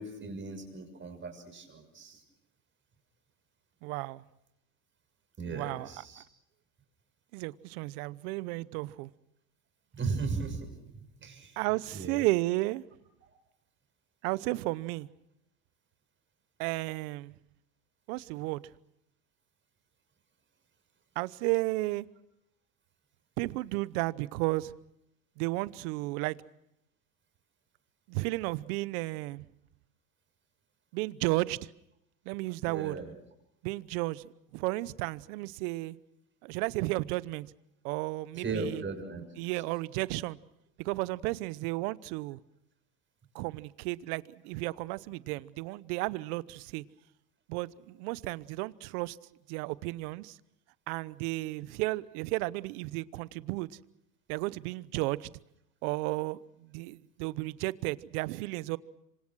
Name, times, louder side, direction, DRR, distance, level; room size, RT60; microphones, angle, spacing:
voice 1, 0.0-2.2 5.4-6.2 9.9-11.6 11.9-12.3 32.6-33.1 38.3-39.2, right 4 dB, 25° right, 6.5 m, -37 dB
voice 2, 3.8-4.2 5.5-5.9 6.2-6.3 7.3-9.1 11.6-12.8 14.2-15.1 16.6-17.3 18.1-18.6 21.2-22.1 23.4-24.7 25.4-26.4 28.1-29.4 30.9-31.7 32.3-33.0 33.6-36.0 36.4-37.5 37.8-38.8 39.4-40.4 40.8-42.4 43.3-46.8 47.5-49.2 49.5-50.4 50.9-53.7 54.3-55.3 55.8-58.8, right 21 dB, 60° right, 1.0 m, -33 dB
26.5 x 25.5 x 6.3 m
supercardioid pair, 115°, 50 cm